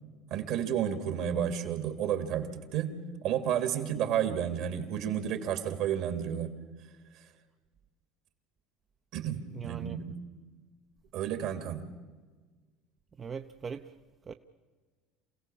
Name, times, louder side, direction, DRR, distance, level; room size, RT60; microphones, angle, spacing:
voice 1, 0.3-2.9 3.2-6.5 9.1-10.2 11.1-11.9, right 9 dB, 60° right, 8 dB, 2.8 m, -31 dB
voice 2, 9.5-10.0 13.2-13.8 14.3-14.4, right 6 dB, 30° right, 6 dB, 0.8 m, -40 dB
27.5 x 17.0 x 7.2 m, 1.4 s
hypercardioid pair, 85°, 0 cm